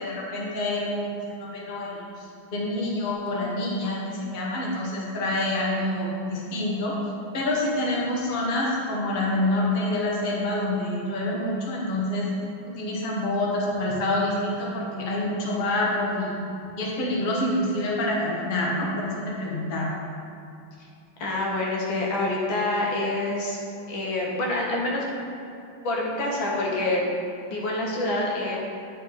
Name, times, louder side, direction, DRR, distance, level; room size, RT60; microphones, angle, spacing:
voice 1, 0.0-7.0 7.3-12.3 12.6-16.3 16.8-19.9, left 1 dB, 35° left, -4 dB, 0.9 m, -27 dB
voice 2, 21.2-23.6 23.9-25.0 25.8-27.1 27.5-28.6, left 2 dB, 75° left, -3 dB, 1.9 m, -26 dB
9.0 x 4.1 x 4.0 m, 2.6 s
omnidirectional pair, 2.1 m